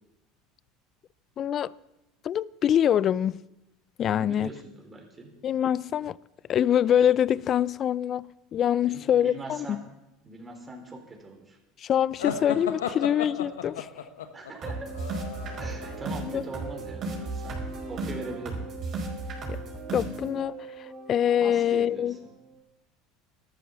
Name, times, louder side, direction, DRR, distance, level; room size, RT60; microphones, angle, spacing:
voice 1, 1.4-1.7 2.2-3.4 4.0-4.5 5.4-6.2 6.5-9.8 11.8-14.0 16.3-16.4 19.5-19.6 19.9-22.2, left 10 dB, 45° left, 0.4 m, -25 dB
voice 2, 4.1-5.3 8.8-9.8 10.2-11.6 14.3-14.9 15.6-17.6 17.9-18.6 21.4-22.2, right 3 dB, 25° right, 4.1 m, -41 dB
sound 1, 12.2-15.9, left 8 dB, 85° left, 1.2 m, -34 dB
sound 2, 14.6-22.6, right 2 dB, 45° right, 5.0 m, -36 dB
13.0 x 12.0 x 7.1 m
hypercardioid pair, 80°, 0 cm